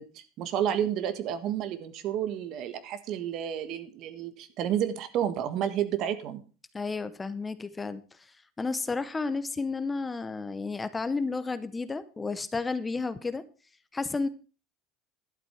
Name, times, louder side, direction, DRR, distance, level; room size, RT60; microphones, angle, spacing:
voice 1, 0.0-6.4, right 10 dB, 50° right, 12 dB, 1.5 m, -31 dB
voice 2, 6.7-8.0 8.6-13.4 13.9-14.3, left 4 dB, 15° left, 13 dB, 0.8 m, -32 dB
12.0 x 8.1 x 5.7 m, 0.36 s
supercardioid pair, 125°, 0 cm